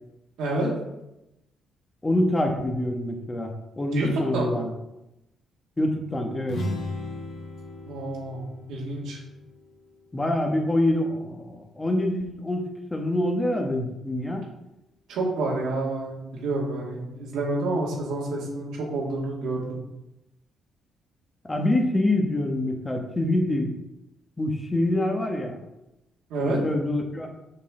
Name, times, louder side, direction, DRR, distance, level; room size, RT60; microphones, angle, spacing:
voice 1, 0.4-0.7 3.9-4.6 7.9-8.4 8.7-9.2 15.1-19.8 26.3-26.6, right 2 dB, 85° right, -3 dB, 2.3 m, -28 dB
voice 2, 2.0-4.7 5.8-6.6 10.1-14.5 21.4-23.7 24.4-25.6 26.4-27.3, left 1 dB, 20° left, 2 dB, 1.2 m, -26 dB
sound 1, 6.4-10.1, left 1 dB, 75° left, 1.9 m, -36 dB
6.7 x 5.7 x 3.8 m, 0.91 s
cardioid pair, 90°, 0 cm